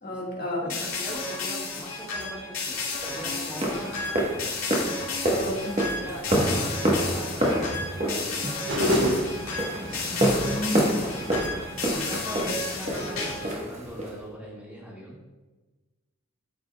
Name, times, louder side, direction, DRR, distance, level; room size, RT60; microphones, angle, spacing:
voice 1, 0.0-0.8 3.6-3.8 5.3-5.9 10.3-11.5, left 1 dB, 45° left, -2 dB, 1.7 m, -32 dB
voice 2, 0.6-4.5 5.4-5.5 5.9-7.7 8.1-9.2 11.8-15.3, equal, 5° right, -5 dB, 1.8 m, -40 dB
sound 1, 0.7-13.6, left 3 dB, 85° left, 2.4 m, -33 dB
sound 2, 3.0-14.2, right 1 dB, 30° right, 1.1 m, -28 dB
sound 3, 8.7-14.2, left 1 dB, 60° right, 1.1 m, -32 dB
12.5 x 5.1 x 2.3 m, 1.2 s
head